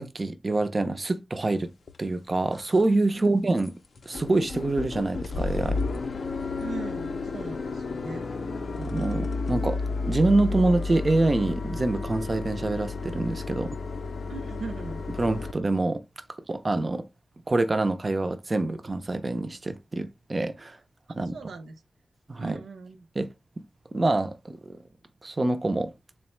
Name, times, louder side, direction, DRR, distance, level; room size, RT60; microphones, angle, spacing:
voice 1, 0.0-1.7 2.0-3.8 4.1-5.8 8.8-9.8 10.1-13.8 15.2-16.0 16.5-17.0 17.5-20.8 21.1-21.4 22.3-22.6 23.2-23.3 23.9-24.8 25.2-25.9, right 2 dB, 25° right, 0.4 m, -26 dB
sound 1, 1.9-2.0 2.5-2.8 3.2-3.3 3.6-3.7 3.9-15.5, left 4 dB, 45° left, 0.4 m, -32 dB
voice 2, 6.6-8.3 14.3-15.0 21.3-21.8 22.4-23.1, right 4 dB, 85° right, 0.6 m, -39 dB
3.8 x 2.0 x 4.3 m
wide cardioid pair, 180°, 0 cm